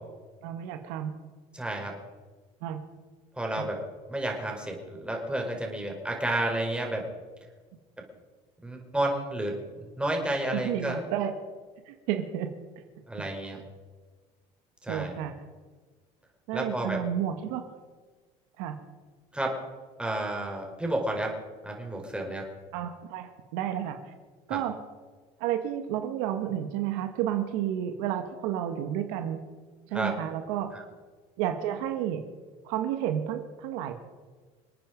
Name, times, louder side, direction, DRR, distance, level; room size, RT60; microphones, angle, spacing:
voice 1, 0.4-1.1 2.6-2.8 3.5-3.7 10.5-11.3 11.9-12.5 13.5-13.6 14.9-15.4 16.5-17.7 18.6-18.8 22.7-24.1 24.5-24.8 25.4-29.4 29.9-30.7 31.4-32.3 32.6-33.9, right 10 dB, 80° right, 7 dB, 1.7 m, -31 dB
voice 2, 1.5-1.9 3.4-3.8 4.1-7.1 8.6-11.0 13.1-13.6 14.8-15.2 16.5-17.0 19.3-19.5 20.0-21.3 21.6-22.4 24.5-24.6 29.9-30.1 30.7-30.8, right 1 dB, 5° right, 0 dB, 4.9 m, -31 dB
27.5 x 9.3 x 5.3 m, 1.4 s
supercardioid pair, 110°, 16 cm